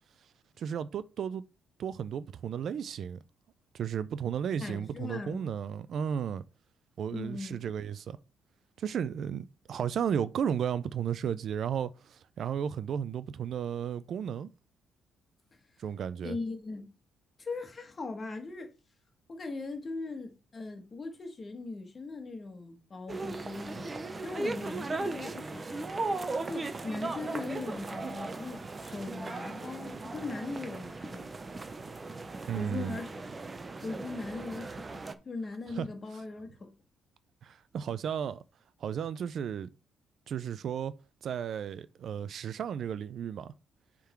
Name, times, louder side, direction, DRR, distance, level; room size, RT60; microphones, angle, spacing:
voice 1, 0.6-1.4 1.8-3.2 3.7-6.4 7.0-8.2 8.8-14.5 15.8-16.4 32.5-33.0 35.7-35.9 37.4-38.4 38.8-39.7 40.3-40.9 41.2-43.5, right 8 dB, 65° right, 0.4 m, -34 dB
voice 2, 4.6-5.4 7.1-7.6 16.2-16.9 17.4-18.7 19.3-25.9 26.5-31.3 32.5-33.3 33.8-36.7, left 3 dB, 35° left, 1.6 m, -39 dB
sound 1, 23.1-35.1, right 3 dB, 30° right, 0.7 m, -37 dB
7.1 x 3.7 x 4.5 m
cardioid pair, 90°, 0 cm